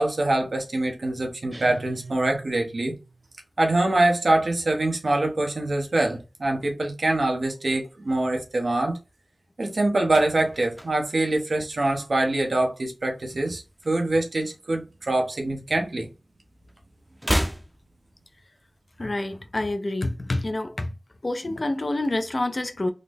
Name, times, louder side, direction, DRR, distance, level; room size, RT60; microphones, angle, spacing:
voice 1, 0.0-2.9 3.6-9.0 9.6-16.1, right 2 dB, 85° right, 0.8 m, -24 dB
sound 1, 1.5-3.2, right 3 dB, 45° right, 1.0 m, -41 dB
sound 2, 10.0-12.4 12.7-13.0 13.3-14.7 15.0-16.4 16.6-18.7 19.0-19.1, equal, ahead, 0.6 m, -33 dB
voice 2, 19.0-20.9 21.2-22.9, left 2 dB, 55° left, 0.4 m, -27 dB
3.8 x 2.0 x 3.4 m
wide cardioid pair, 45°, 0 cm